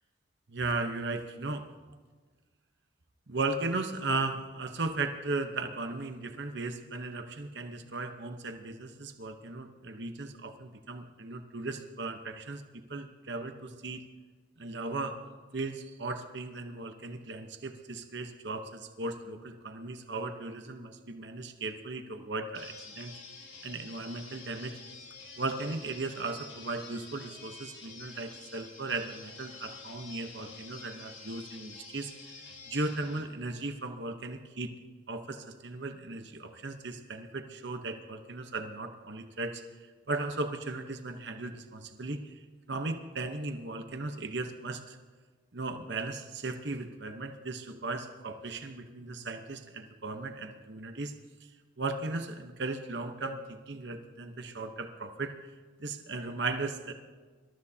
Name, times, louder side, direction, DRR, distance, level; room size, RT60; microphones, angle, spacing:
voice 1, 0.5-1.7 3.3-12.6 12.9-14.0 14.6-15.2 15.5-23.1 23.4-24.7 25.4-34.7 35.1-39.6 40.1-45.0 45.5-51.1 51.8-55.3 55.8-56.9, right 3 dB, 55° right, 5 dB, 1.0 m, -37 dB
sound 1, 22.5-33.2, left 4 dB, 65° left, 2.5 m, -48 dB
25.5 x 13.0 x 2.8 m, 1.4 s
head